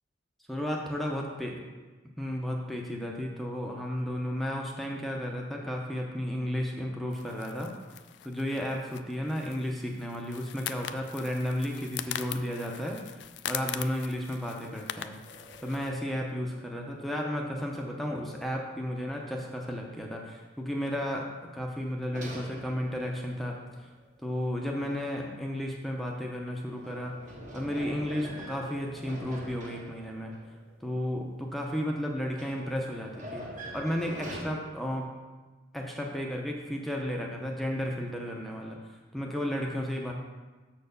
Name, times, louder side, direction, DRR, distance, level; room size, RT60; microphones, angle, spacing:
voice 1, 0.5-1.6 2.2-7.7 8.2-15.1 15.6-23.9 24.2-27.1 27.5-30.3 30.8-33.4 33.7-35.1 35.7-40.1, equal, ahead, -1 dB, 0.6 m, -33 dB
sound 1, 7.1-15.9, left 11 dB, 65° left, 0.3 m, -41 dB
sound 2, 15.2-18.8 19.3-19.4 22.1-24.5 26.6-31.5 32.3-34.4, right 1 dB, 40° right, 1.3 m, -45 dB
6.4 x 4.4 x 6.6 m, 1.3 s
head